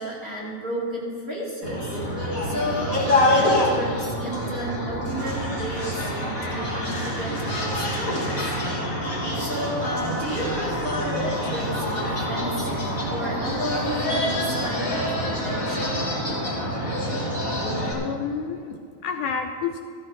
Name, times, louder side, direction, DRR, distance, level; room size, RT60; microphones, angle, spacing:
voice 1, 0.0-8.6 9.4-12.7 13.1-16.0, equal, 30° right, -6 dB, 1.9 m, -32 dB
sound 1, 1.6-17.9, left 1 dB, 25° left, 2.3 m, -26 dB
voice 2, 17.9-19.8, left 6 dB, 80° left, 4 dB, 2.0 m, -30 dB
14.5 x 13.5 x 4.0 m, 2.2 s
omnidirectional pair, 4.0 m